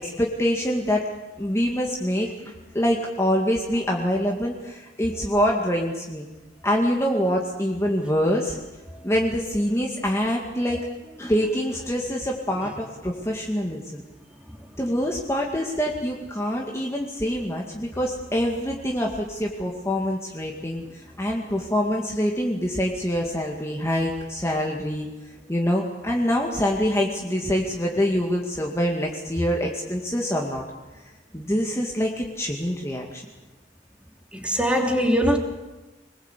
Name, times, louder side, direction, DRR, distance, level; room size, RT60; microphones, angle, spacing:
voice 1, 0.0-1.0 1.4-6.3 6.6-8.6 9.0-10.8 11.2-14.0 14.8-25.1 25.5-30.6 31.3-33.2, equal, 15° left, -1 dB, 2.1 m, -25 dB
voice 2, 34.3-35.4, equal, 5° right, 2 dB, 3.2 m, -21 dB
25.0 x 20.5 x 8.3 m, 1.1 s
head